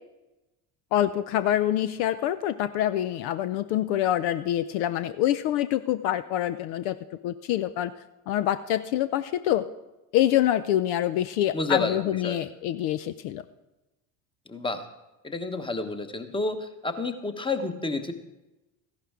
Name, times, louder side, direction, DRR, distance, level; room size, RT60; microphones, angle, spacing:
voice 1, 0.9-7.0 7.2-7.9 8.3-9.7 10.1-13.4, left 12 dB, 65° left, 13 dB, 0.6 m, -26 dB
voice 2, 11.5-12.4 14.5-14.8 15.2-18.1, left 3 dB, 10° left, 8 dB, 1.2 m, -29 dB
14.5 x 11.5 x 3.6 m, 1.0 s
hypercardioid pair, 70°, 44 cm